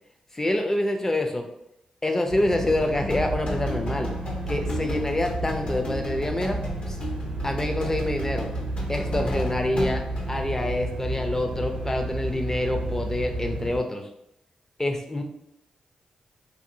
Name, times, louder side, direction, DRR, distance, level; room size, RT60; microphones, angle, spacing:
voice 1, 0.3-1.5 2.0-4.1 4.5-6.6 6.9-7.0 7.4-8.5 8.9-10.0 10.3-14.1 14.8-15.2, left 1 dB, 20° left, 4 dB, 0.5 m, -26 dB
sound 1, 2.3-13.8, right 2 dB, 80° right, 0.7 m, -32 dB
sound 2, 2.6-10.3, left 1 dB, 50° left, 0.7 m, -34 dB
2.7 x 2.6 x 2.6 m, 0.81 s
cardioid pair, 55°, 2 cm